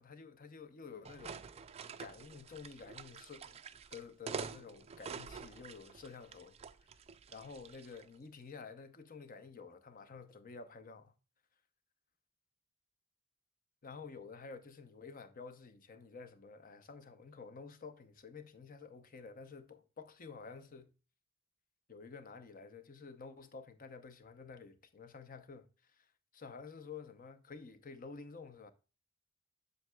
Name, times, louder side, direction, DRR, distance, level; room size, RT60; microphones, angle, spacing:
voice 1, 0.0-1.5 1.8-3.6 3.9-6.9 7.3-11.1 13.8-20.9 21.9-26.1 26.3-28.7, left 5 dB, 45° left, 0.7 m, -51 dB
sound 1, 1.0-8.1, right 6 dB, 30° right, 0.3 m, -47 dB
7.8 x 6.6 x 2.2 m
head